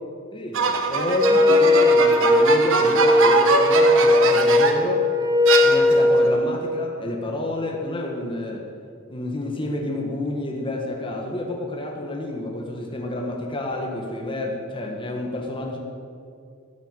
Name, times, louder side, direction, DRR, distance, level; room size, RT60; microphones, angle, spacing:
voice 1, 0.3-5.1 5.6-8.6 9.1-15.8, left 1 dB, 25° left, 0 dB, 1.5 m, -29 dB
sound 1, 0.5-4.9 5.5-6.2, right 4 dB, 60° right, 1.1 m, -23 dB
Wind instrument woodwind instrument, 1.2-6.4, left 2 dB, 15° right, 1.1 m, -18 dB
13.5 x 7.0 x 9.1 m, 2.4 s
head